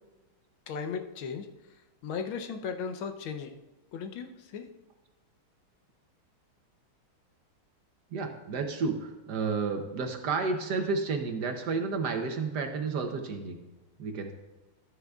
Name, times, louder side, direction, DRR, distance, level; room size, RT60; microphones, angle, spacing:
voice 1, 0.7-3.6 3.9-4.7, left 6 dB, 80° left, 7 dB, 1.6 m, -37 dB
voice 2, 8.1-13.6 14.0-14.3, right 4 dB, 60° right, 5 dB, 1.2 m, -31 dB
13.0 x 9.8 x 2.4 m, 1.1 s
omnidirectional pair, 2.2 m